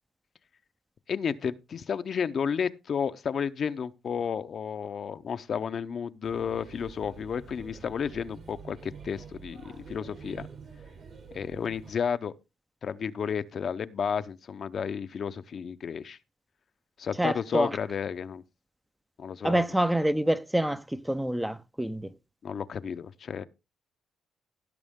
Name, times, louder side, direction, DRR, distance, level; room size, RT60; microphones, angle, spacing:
voice 1, 1.1-10.5 11.3-12.3 12.8-16.2 17.0-18.4 19.2-19.6 22.4-23.4, left 7 dB, 50° left, 0.7 m, -32 dB
Male speech man speaking / Child speech kid speaking / Chatter, 6.2-11.9, right 5 dB, 55° right, 3.4 m, -47 dB
voice 2, 17.2-17.8 19.4-22.1, right 1 dB, 5° right, 0.6 m, -27 dB
16.5 x 6.2 x 3.6 m
cardioid pair, 90°, 0 cm